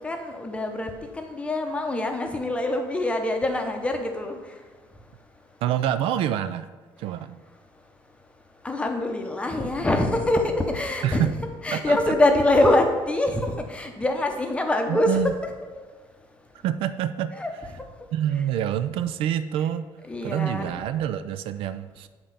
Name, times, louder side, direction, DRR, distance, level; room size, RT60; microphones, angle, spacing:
voice 1, 0.0-4.4 8.6-11.2 11.6-15.3 17.4-17.5 20.1-20.7, left 1 dB, 10° left, 4 dB, 0.7 m, -24 dB
voice 2, 5.6-6.7 7.0-7.4 11.0-11.3 11.7-12.1 14.9-15.3 16.6-17.3 18.1-19.9 20.2-22.1, right 10 dB, 80° right, 12 dB, 0.4 m, -26 dB
7.8 x 3.6 x 5.5 m, 1.3 s
cardioid pair, 140°, 9 cm